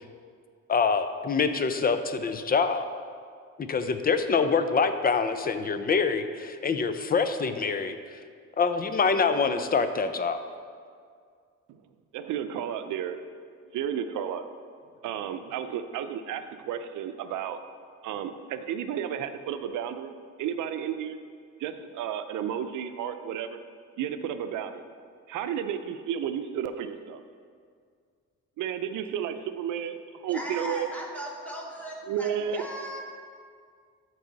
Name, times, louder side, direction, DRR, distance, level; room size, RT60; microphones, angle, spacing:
voice 1, 0.7-2.9 3.6-8.0 8.6-10.4, left 5 dB, 30° left, 0.6 m, -25 dB
voice 2, 12.1-13.2 13.7-14.4 15.0-17.6 18.0-20.1 20.4-21.2 21.6-23.6 24.0-24.8 25.3-27.2 28.6-30.9 32.1-32.6, right 9 dB, 80° right, 0.6 m, -32 dB
voice 3, 30.3-33.0, equal, 5° left, 1.8 m, -38 dB
13.0 x 4.8 x 4.0 m
cardioid pair, 90°, 30 cm